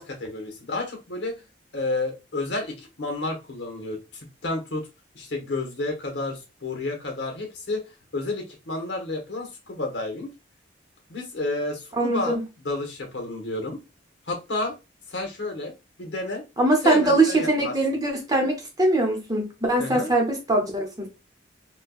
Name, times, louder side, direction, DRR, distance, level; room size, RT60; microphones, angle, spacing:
voice 1, 0.0-1.4 1.7-4.9 5.1-7.8 8.1-10.3 11.1-13.8 14.3-14.7 15.1-15.7 16.0-16.4 16.8-17.7 19.8-20.1, left 2 dB, 65° left, 1.1 m, -31 dB
voice 2, 11.9-12.4 16.6-21.1, right 2 dB, 20° right, 0.8 m, -22 dB
4.3 x 2.2 x 2.3 m
head